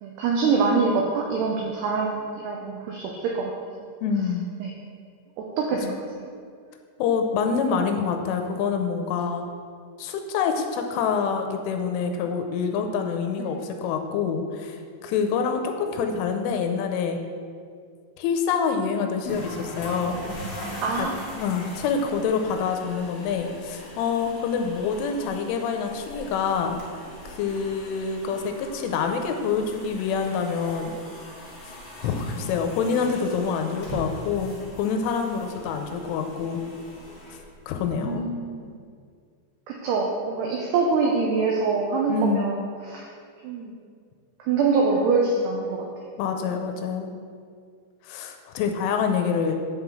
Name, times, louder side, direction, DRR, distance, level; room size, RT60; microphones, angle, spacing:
voice 1, 0.0-3.5 4.6-4.7 5.4-5.9 6.2-6.3 13.4-13.5 20.8-21.4 32.2-32.4 38.0-38.7 39.7-42.6 42.9-43.1 43.4-43.8 44.4-45.9 46.5-46.6, right 4 dB, 85° right, -1 dB, 2.3 m, -25 dB
voice 2, 4.0-4.5 7.0-9.5 10.0-17.2 18.2-20.2 20.9-21.1 21.3-26.8 27.3-31.0 31.6-31.7 32.0-36.6 37.7-38.2 42.1-42.5 46.2-47.1 48.0-49.6, left 6 dB, 80° left, 5 dB, 3.1 m, -26 dB
sound 1, 19.2-38.1, left 1 dB, 45° left, 1.7 m, -40 dB
8.4 x 5.9 x 7.1 m, 2.2 s
omnidirectional pair, 5.8 m